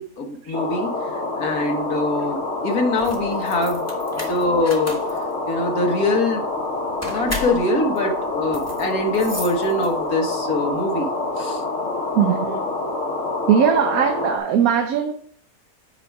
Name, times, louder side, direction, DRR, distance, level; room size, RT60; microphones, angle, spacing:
voice 1, 0.0-3.9 4.2-5.0 5.5-6.5 7.1-11.6, left 2 dB, 90° left, 3 dB, 1.8 m, -23 dB
sound 1, 0.5-14.4, left 2 dB, 60° left, 1.5 m, -27 dB
sound 2, 2.9-10.2, left 1 dB, 10° left, 1.5 m, -36 dB
voice 2, 12.2-12.6 13.5-15.1, right 8 dB, 80° right, 6 dB, 1.1 m, -19 dB
8.3 x 4.8 x 4.7 m, 0.62 s
omnidirectional pair, 1.5 m